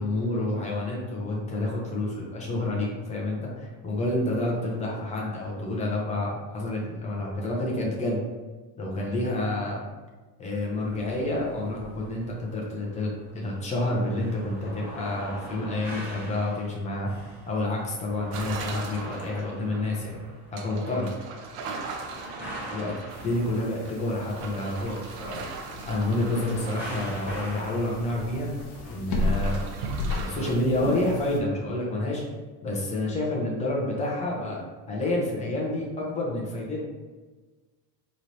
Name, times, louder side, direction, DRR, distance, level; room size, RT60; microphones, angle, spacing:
voice 1, 0.0-8.2 8.8-9.8 10.4-17.1 17.5-20.2 20.5-21.1 22.7-22.9 23.2-25.4 25.9-28.5 28.9-29.6 30.1-32.2 32.6-34.6 34.9-36.8, left 1 dB, 15° left, -3 dB, 0.5 m, -29 dB
sound 1, 10.8-28.9, right 1 dB, 5° right, 1.0 m, -44 dB
sound 2, 18.3-28.0 28.3-30.6, right 4 dB, 85° right, 0.7 m, -40 dB
sound 3, 23.1-31.4, left 2 dB, 65° left, 0.8 m, -34 dB
4.3 x 3.2 x 2.6 m, 1.3 s
cardioid pair, 160°, 46 cm